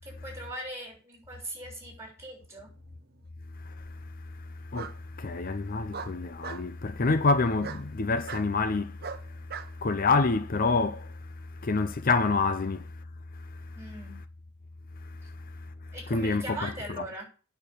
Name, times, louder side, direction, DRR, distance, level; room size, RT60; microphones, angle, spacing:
voice 1, 0.0-2.7 13.7-14.2 15.9-17.3, right 1 dB, 15° right, 6.4 m, -40 dB
Bark, 2.6-3.2 4.7-5.0 5.9-6.7 7.6-7.8 8.3-8.5 9.0-9.7, right 6 dB, 50° right, 0.9 m, -39 dB
voice 2, 3.6-4.0 4.4-9.5 9.7-13.0 13.4-13.8 15.0-15.7 16.1-16.7, left 3 dB, 45° left, 0.6 m, -28 dB
9.2 x 6.9 x 8.5 m
head